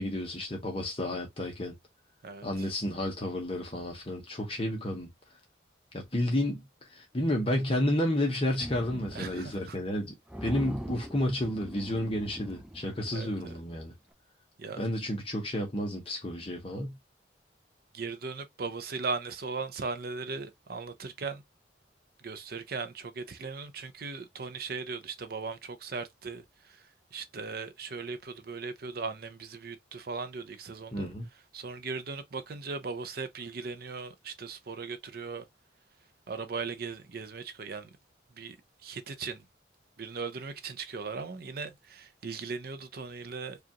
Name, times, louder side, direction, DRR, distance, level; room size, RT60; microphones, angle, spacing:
voice 1, 0.0-1.7 2.4-5.1 5.9-6.6 6.9-10.1 10.4-13.9 14.8-17.0 30.9-31.3, left 1 dB, 30° left, 0.9 m, -31 dB
voice 2, 2.2-2.7 9.1-9.8 13.1-13.6 14.6-14.8 17.9-21.4 22.2-31.1 31.5-35.4 36.3-37.9 38.4-38.6 38.8-39.4 40.0-43.6, right 4 dB, 55° right, 0.5 m, -38 dB
sound 1, 8.6-9.6 9.9-10.0 10.3-13.7, equal, 5° right, 0.3 m, -42 dB
4.9 x 2.4 x 2.8 m
head